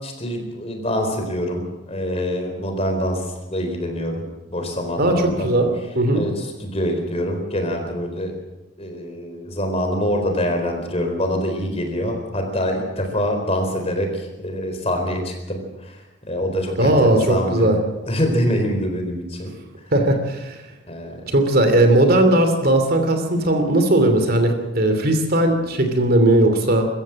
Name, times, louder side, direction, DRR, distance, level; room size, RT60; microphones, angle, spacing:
voice 1, 0.0-3.2 3.5-4.2 4.5-5.5 6.1-8.4 8.8-16.0 16.3-17.7 18.1-19.5 20.9-21.2, equal, 30° left, 4 dB, 4.2 m, -25 dB
voice 2, 5.0-6.2 16.8-17.8 19.9-20.6 21.3-26.9, right 1 dB, 50° right, 6 dB, 2.9 m, -18 dB
24.0 x 14.5 x 7.7 m, 1.0 s
head